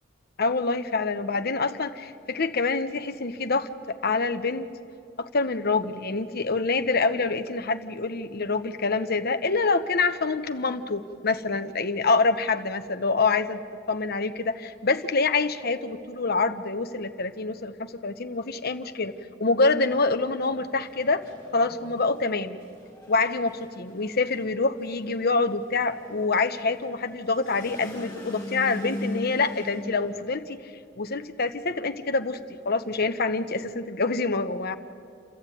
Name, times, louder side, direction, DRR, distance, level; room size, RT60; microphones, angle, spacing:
voice 1, 0.4-4.7 5.2-13.6 13.9-19.1 19.4-21.2 21.5-22.6 23.1-30.6 31.0-32.4 32.6-34.8, left 3 dB, 55° left, 9 dB, 1.0 m, -26 dB
sound 1, 19.8-30.2, left 1 dB, 10° left, 5.4 m, -40 dB
29.0 x 14.0 x 9.2 m, 2.6 s
head